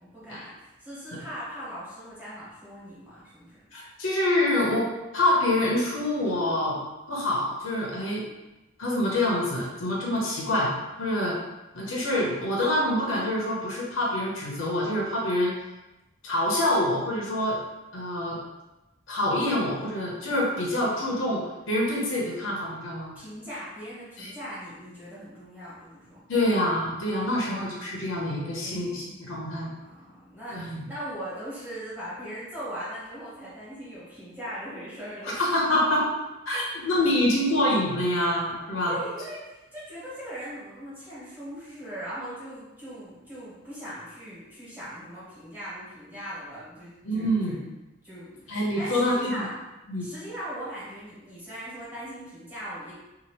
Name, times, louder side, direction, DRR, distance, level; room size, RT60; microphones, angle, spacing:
voice 1, 0.0-3.6 23.1-26.2 27.2-28.0 28.6-29.0 29.7-35.4 36.5-36.6 38.5-39.4 39.7-47.6 48.0-49.5 50.0-52.9, equal, 10° right, -11 dB, 1.3 m, -40 dB
voice 2, 3.7-6.8 7.1-8.2 8.8-10.7 11.0-11.4 11.7-15.5 16.2-17.6 17.9-18.4 19.1-23.1 24.2-24.3 26.3-29.7 30.5-30.8 35.4-36.1 36.5-39.0 47.0-47.6 48.5-49.5 49.9-50.1, left 1 dB, 75° left, -4 dB, 0.8 m, -26 dB
2.8 x 2.5 x 2.9 m, 1.0 s
head